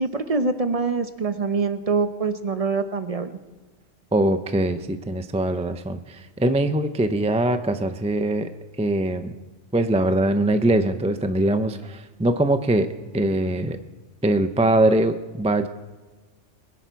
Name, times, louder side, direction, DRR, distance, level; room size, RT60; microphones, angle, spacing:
voice 1, 0.0-3.4, right 4 dB, 35° right, 9 dB, 0.7 m, -24 dB
voice 2, 4.1-8.5 8.8-9.3 9.7-12.9 13.1-13.8 14.2-15.7, right 1 dB, 10° right, 9 dB, 0.3 m, -22 dB
21.5 x 10.5 x 4.6 m, 1.3 s
omnidirectional pair, 1.2 m